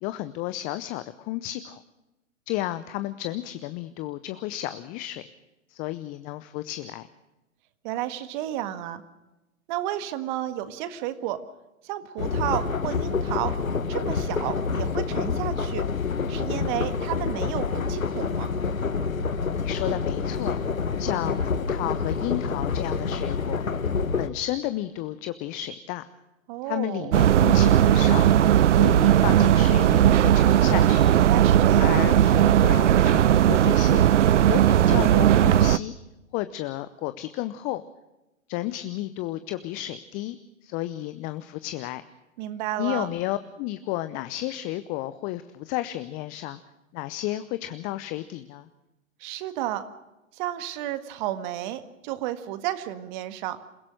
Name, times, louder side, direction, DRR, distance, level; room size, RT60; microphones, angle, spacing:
voice 1, 0.0-1.8 2.5-5.2 5.7-7.1 19.5-20.6 21.0-23.6 24.2-26.0 26.6-28.2 28.7-31.0 31.8-34.0 34.5-35.9 36.3-37.8 38.5-40.4 40.6-42.0 42.8-46.6 46.9-48.7, left 15 dB, 20° left, 13 dB, 0.6 m, -32 dB
voice 2, 7.8-9.0 9.7-11.4 11.8-13.5 13.9-15.9 16.3-18.5 26.5-27.1 31.2-32.2 42.4-43.1 49.2-49.8 50.4-53.6, right 13 dB, 35° right, 11 dB, 1.8 m, -32 dB
sound 1, 12.2-24.3, left 5 dB, 85° left, 1.4 m, -27 dB
sound 2, 27.1-35.8, right 11 dB, 60° right, 0.7 m, -18 dB
27.5 x 16.5 x 6.4 m, 0.99 s
figure-of-eight pair, 120°, 40 cm